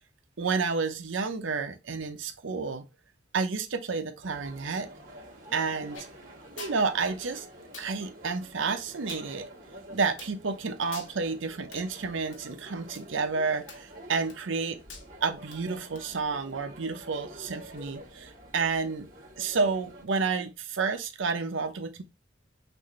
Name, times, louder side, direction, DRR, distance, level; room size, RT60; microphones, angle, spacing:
voice 1, 0.4-2.8 3.3-4.9 5.5-6.1 6.6-7.5 7.8-9.5 9.9-14.8 15.2-19.1 19.4-22.0, right 4 dB, 80° right, 0.7 m, -30 dB
sound 1, 4.2-20.0, right 1 dB, 45° right, 1.6 m, -48 dB
sound 2, 5.9-6.1 6.6-6.8 7.7-7.9 9.1-9.3 10.2-10.4 10.9-11.1 11.7-11.9 12.3-12.4 12.9-13.0 13.7-14.0 14.3-14.6 14.9-15.1 15.5-15.6 15.9-16.0, left 4 dB, 85° left, 1.1 m, -45 dB
6.1 x 2.6 x 3.1 m
head